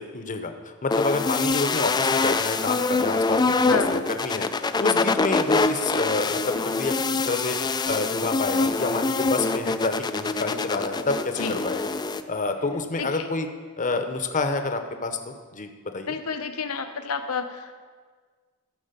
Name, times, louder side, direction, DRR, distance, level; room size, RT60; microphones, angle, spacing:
voice 1, 0.0-4.5 4.8-6.9 7.3-7.6 7.9-11.9 12.3-13.5 13.8-15.7 15.9-16.1, left 3 dB, 35° left, 6 dB, 0.8 m, -28 dB
sound 1, 0.9-12.2, left 3 dB, 20° left, 0.3 m, -24 dB
voice 2, 3.6-4.0 11.4-11.7 13.0-13.3 16.1-17.8, left 5 dB, 80° left, 7 dB, 0.9 m, -30 dB
14.0 x 5.0 x 6.7 m, 1.5 s
head